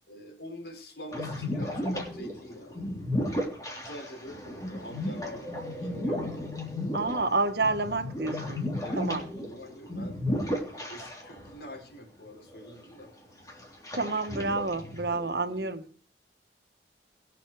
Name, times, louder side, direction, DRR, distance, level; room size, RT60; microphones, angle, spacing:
voice 1, 0.1-2.8 3.2-6.3 8.8-10.2 10.5-13.1 15.1-15.8, equal, 70° left, 4.8 m, -45 dB
sound 1, 1.1-11.5 11.8-11.9 12.5-13.0 13.5-15.3, left 1 dB, 20° left, 3.4 m, -34 dB
voice 2, 6.9-8.6 8.9-9.2 13.9-15.9, right 3 dB, 70° right, 1.5 m, -29 dB
21.0 x 7.5 x 4.8 m
head